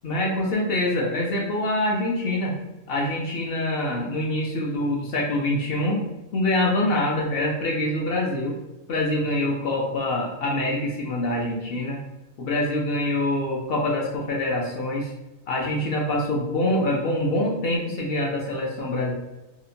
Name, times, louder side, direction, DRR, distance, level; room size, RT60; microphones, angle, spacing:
voice 1, 0.0-2.6 2.9-6.0 6.3-8.6 8.9-12.0 12.4-15.1 15.5-19.1, left 1 dB, 65° left, -2 dB, 0.6 m, -25 dB
2.8 x 2.1 x 2.5 m, 0.99 s
omnidirectional pair, 1.3 m